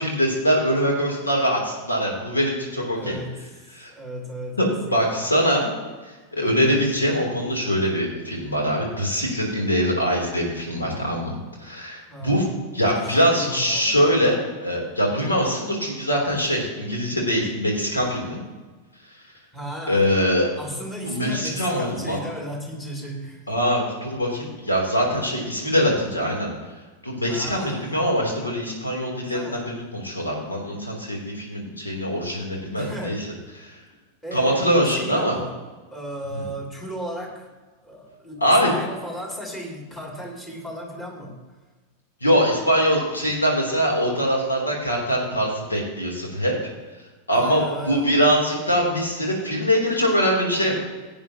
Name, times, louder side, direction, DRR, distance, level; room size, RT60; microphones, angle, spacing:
voice 1, 0.0-3.2 3.7-3.9 4.6-5.7 6.3-11.3 11.6-12.4 12.7-18.4 19.9-20.5 21.0-22.2 23.5-26.5 27.0-33.3 33.6-33.7 34.3-35.4 36.3-36.4 38.4-38.7 42.2-46.5 47.3-50.7, equal, 80° left, -1 dB, 3.1 m, -23 dB
voice 2, 2.9-5.5 6.4-6.6 12.1-12.6 12.8-14.0 15.1-15.4 19.5-20.2 20.6-23.4 27.3-28.1 29.3-29.7 32.7-33.2 34.2-35.6 35.9-37.5 37.8-41.4 47.3-48.2, equal, 15° left, -1 dB, 2.8 m, -35 dB
16.5 x 8.8 x 2.9 m, 1.3 s
figure-of-eight pair, 90°, 0 cm